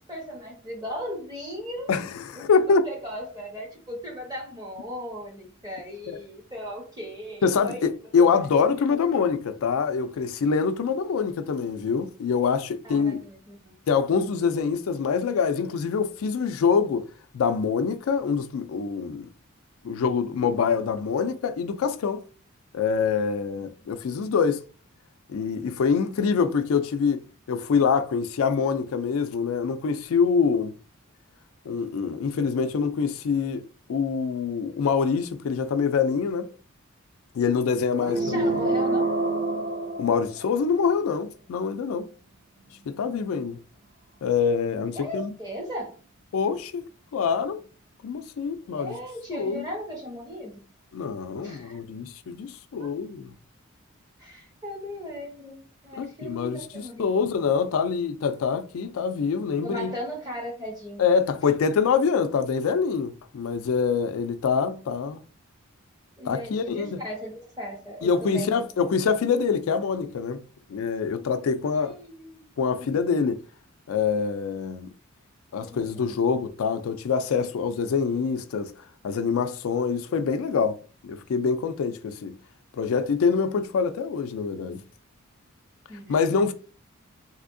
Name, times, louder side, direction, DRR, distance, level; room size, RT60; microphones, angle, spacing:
voice 1, 0.0-1.9 2.3-7.9 12.8-13.8 14.2-14.4 37.9-39.1 44.9-45.9 48.7-50.6 51.4-51.8 52.8-52.9 54.2-57.4 59.6-61.1 66.2-68.5 71.7-72.5 72.8-73.0 75.6-76.2 85.9-86.2, equal, 20° right, 1.1 m, -37 dB
voice 2, 1.9-2.8 6.1-6.2 7.4-13.2 13.9-17.0 17.3-19.3 19.8-22.2 22.7-24.6 25.3-30.7 31.7-36.5 37.3-38.6 40.0-42.1 42.9-43.6 44.2-45.3 46.3-46.8 47.1-47.6 48.0-49.0 49.3-49.7 50.9-53.3 56.0-56.7 57.0-60.0 61.0-65.2 66.3-67.0 68.0-70.4 70.7-71.9 72.6-73.4 73.9-74.9 75.5-78.7 79.0-80.8 81.0-82.4 82.8-84.8 86.1-86.5, left 5 dB, 75° left, 0.3 m, -25 dB
sound 1, 38.1-40.7, right 3 dB, 35° right, 0.5 m, -26 dB
3.4 x 2.7 x 2.5 m
head